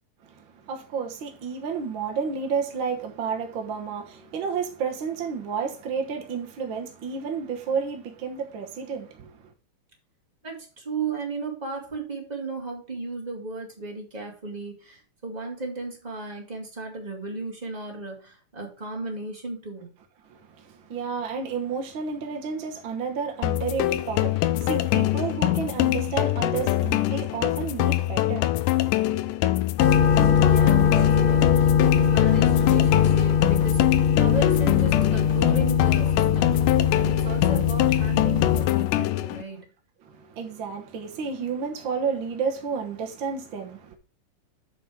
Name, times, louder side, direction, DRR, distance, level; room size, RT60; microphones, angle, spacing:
voice 1, 0.2-9.5 20.3-29.2 40.0-43.9, right 6 dB, 65° right, 1.2 m, -31 dB
voice 2, 10.4-19.9 29.8-39.6, right 3 dB, 20° right, 1.4 m, -35 dB
sound 1, 23.4-39.4, left 15 dB, 85° left, 2.2 m, -24 dB
sound 2, 29.8-38.7, left 7 dB, 70° left, 1.9 m, -21 dB
7.9 x 4.6 x 4.9 m
omnidirectional pair, 3.8 m